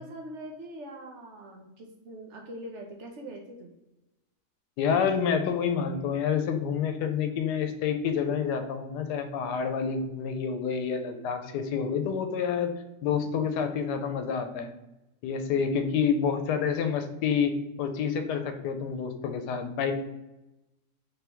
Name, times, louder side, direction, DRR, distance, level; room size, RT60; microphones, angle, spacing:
voice 1, 0.0-3.7, right 1 dB, 70° right, 1 dB, 0.7 m, -42 dB
voice 2, 4.8-12.7 13.0-14.7 15.2-19.9, left 6 dB, 80° left, 7 dB, 1.1 m, -28 dB
3.7 x 2.9 x 3.3 m, 0.96 s
omnidirectional pair, 1.7 m